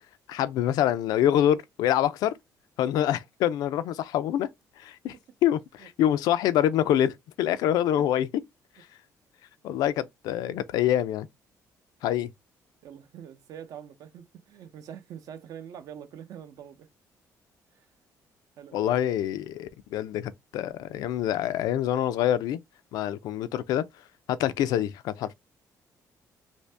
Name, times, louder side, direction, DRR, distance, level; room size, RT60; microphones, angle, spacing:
voice 1, 0.3-2.3 2.8-4.5 4.8-5.1 5.4-8.3 9.6-11.3 12.0-12.3 18.7-22.6 22.9-23.8 24.3-25.3, left 11 dB, 85° left, 0.4 m, -26 dB
voice 2, 12.8-16.9 17.7-17.9 18.6-18.8, right 9 dB, 65° right, 0.6 m, -44 dB
2.7 x 2.6 x 3.3 m
cardioid pair, 135°, 7 cm